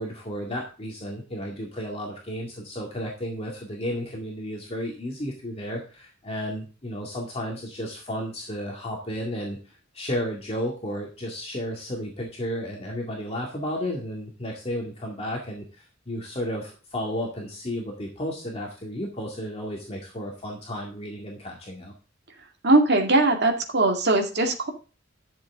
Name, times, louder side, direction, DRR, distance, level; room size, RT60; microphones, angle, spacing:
voice 1, 0.0-21.9, equal, 30° left, -1 dB, 2.1 m, -33 dB
voice 2, 22.6-24.7, right 2 dB, 60° right, 3 dB, 2.1 m, -20 dB
12.0 x 7.3 x 3.7 m, 0.35 s
head